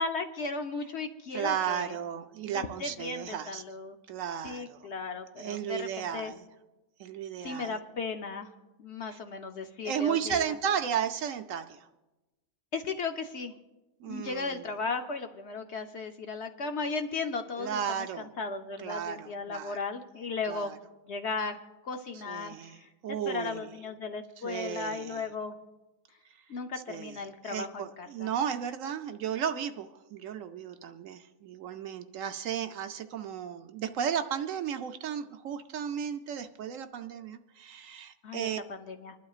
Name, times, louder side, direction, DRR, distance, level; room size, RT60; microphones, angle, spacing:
voice 1, 0.0-2.0 2.5-4.0 4.4-6.3 7.4-8.5 8.8-10.5 12.7-13.5 14.0-20.7 21.1-22.9 23.3-25.6 26.5-28.3 38.2-39.1, left 4 dB, 55° left, 6 dB, 0.8 m, -36 dB
voice 2, 1.3-3.6 4.1-4.8 5.4-6.4 7.0-7.8 9.1-9.2 9.8-11.9 14.0-14.6 17.6-18.3 18.8-19.8 20.5-20.8 22.3-22.8 23.0-23.7 24.4-25.2 26.9-27.2 27.4-38.6, right 8 dB, 70° right, 8 dB, 0.9 m, -34 dB
25.5 x 11.5 x 2.4 m, 1.1 s
omnidirectional pair, 1.6 m